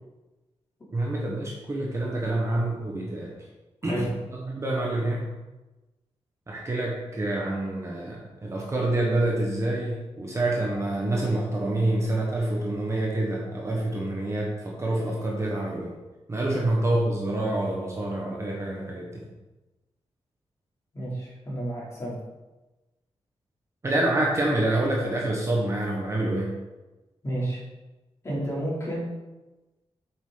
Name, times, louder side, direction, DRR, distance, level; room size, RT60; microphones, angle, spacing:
voice 1, 0.9-3.3 3.8-4.1 4.4-5.3 6.5-15.9 16.3-19.3 23.8-26.5, right 1 dB, 25° right, -2 dB, 1.3 m, -27 dB
voice 2, 20.9-22.2 27.2-27.6 28.2-29.1, right 1 dB, 30° left, -6 dB, 3.1 m, -31 dB
8.3 x 7.2 x 3.9 m, 1.1 s
wide cardioid pair, 180°, 11 cm